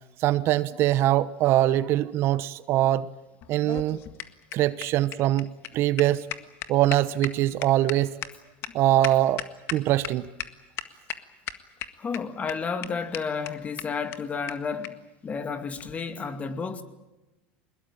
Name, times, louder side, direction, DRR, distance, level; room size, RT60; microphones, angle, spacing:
voice 1, 0.2-3.1 3.5-4.0 4.5-6.3 6.7-8.1 8.7-9.4 9.7-10.2, right 14 dB, 55° right, 0.9 m, -23 dB
sound 1, 3.4-10.1 10.4-10.5 10.8-11.2 11.5-12.2 12.5-12.6 12.8-12.9 13.1-13.2 13.5-13.6 13.8-13.9 14.1-14.2 14.5-14.6 14.8-14.9 15.8-15.9, left 12 dB, 55° left, 1.7 m, -35 dB
voice 2, 12.0-16.8, left 5 dB, 30° left, 2.4 m, -32 dB
22.5 x 20.5 x 9.0 m
supercardioid pair, 105°, 5 cm